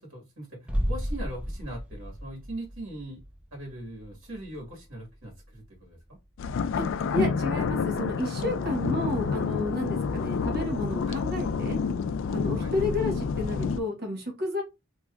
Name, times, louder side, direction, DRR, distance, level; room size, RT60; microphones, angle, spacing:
voice 1, 0.1-3.2 3.5-6.0 8.3-8.7 11.1-11.2 12.5-12.8, right 1 dB, 70° right, -2 dB, 1.6 m, -40 dB
sound 1, 0.7-6.4 6.7-6.8, equal, 5° right, 0.5 m, -35 dB
sound 2, 6.4-13.8, left 5 dB, 65° left, 0.3 m, -29 dB
voice 2, 6.8-11.8 12.3-14.6, left 2 dB, 50° right, 2 dB, 1.2 m, -31 dB
3.3 x 2.9 x 2.4 m, 0.24 s
head